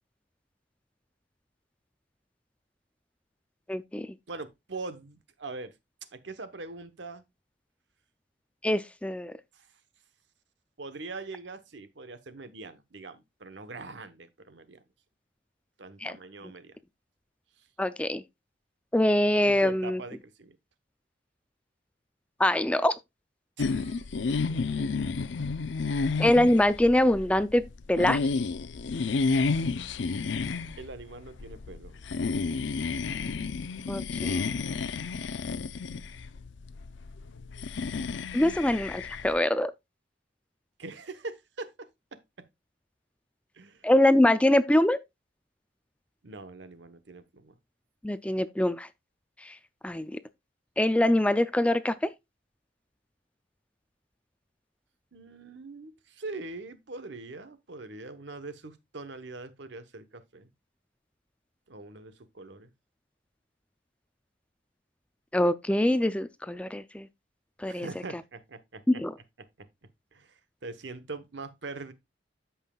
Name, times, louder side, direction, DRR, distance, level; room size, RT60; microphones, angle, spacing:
voice 1, 3.7-4.1 8.6-9.3 16.0-16.1 17.8-18.2 18.9-20.0 22.4-23.0 26.2-28.2 33.9-34.4 38.3-39.7 43.8-45.0 48.0-48.9 49.4-49.6 49.8-50.1 50.8-52.1 65.3-67.1 67.6-67.9 68.9-69.1, left 1 dB, 5° left, 0.3 m, -24 dB
voice 2, 4.3-5.7 6.1-7.2 9.5-9.7 10.8-14.8 15.8-16.8 17.6-17.7 19.4-20.6 23.6-24.2 24.7-25.0 25.8-26.1 30.8-32.1 40.8-42.5 43.5-43.9 46.2-47.6 55.1-60.5 61.7-62.7 67.7-69.0 69.4-69.7 70.1-71.9, right 3 dB, 65° right, 1.0 m, -43 dB
sound 1, 23.6-39.4, left 4 dB, 70° left, 0.5 m, -31 dB
13.5 x 5.6 x 2.3 m
head